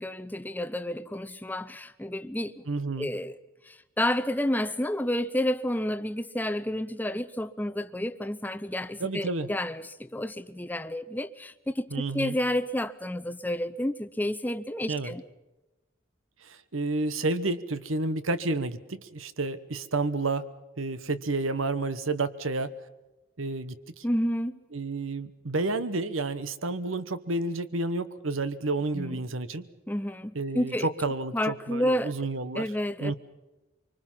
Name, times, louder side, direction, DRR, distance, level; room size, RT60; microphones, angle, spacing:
voice 1, 0.0-2.6 3.0-3.4 3.6-11.9 12.1-15.2 24.0-24.6 28.9-29.2 29.9-30.9 31.3-32.1 32.5-33.1, left 1 dB, 10° left, 0.7 m, -30 dB
voice 2, 2.7-3.1 9.0-9.5 11.9-12.4 14.9-15.1 16.4-20.4 20.8-22.7 23.4-24.0 24.7-29.7 30.3-32.6 33.0-33.2, right 3 dB, 80° right, 1.1 m, -30 dB
25.0 x 25.0 x 5.7 m
head